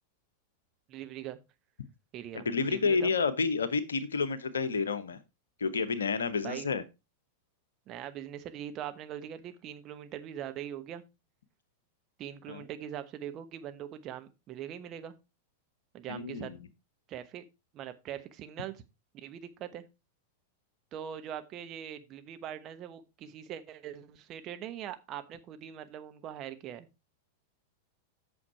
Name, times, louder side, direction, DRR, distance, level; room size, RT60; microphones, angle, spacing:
voice 1, 0.9-1.4 2.1-3.1 6.4-6.7 7.9-11.0 12.2-15.1 15.9-16.5 17.1-17.4 17.7-18.8 19.1-19.9 20.9-26.9, right 10 dB, 35° right, 8 dB, 1.1 m, -42 dB
voice 2, 2.3-5.2 5.6-6.8 12.5-12.6 16.1-16.6, left 4 dB, 70° left, 13 dB, 0.9 m, -30 dB
8.7 x 6.4 x 4.4 m, 0.26 s
figure-of-eight pair, 90°, 0 cm